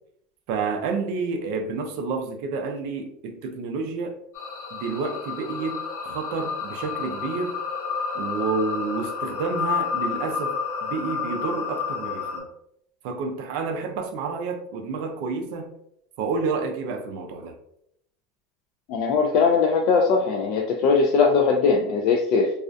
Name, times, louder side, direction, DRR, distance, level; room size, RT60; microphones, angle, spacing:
voice 1, 0.5-4.1 4.7-7.6 8.1-10.5 10.8-12.5 13.0-15.7 16.2-17.5, right 4 dB, 60° right, 5 dB, 0.4 m, -29 dB
sound 1, 4.3-12.4, left 5 dB, 75° left, 0.8 m, -30 dB
voice 2, 18.9-22.5, left 5 dB, 50° left, 1 dB, 0.3 m, -20 dB
2.3 x 2.2 x 2.5 m, 0.75 s
supercardioid pair, 145°, 0 cm